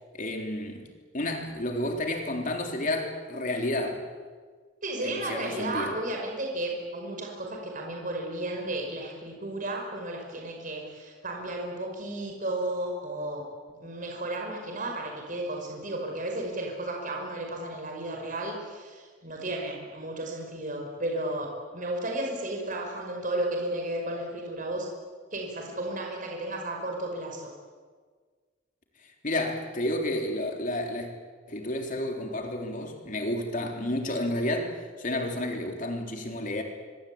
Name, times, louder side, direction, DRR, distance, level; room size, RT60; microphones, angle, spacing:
voice 1, 0.1-0.9 1.1-4.0 5.0-5.9 29.2-31.1 31.5-36.6, left 1 dB, 45° left, 3 dB, 3.7 m, -31 dB
voice 2, 4.8-13.4 13.8-24.9 25.3-27.5, right 1 dB, 45° right, 1 dB, 5.6 m, -33 dB
25.0 x 24.0 x 8.7 m, 1.5 s
head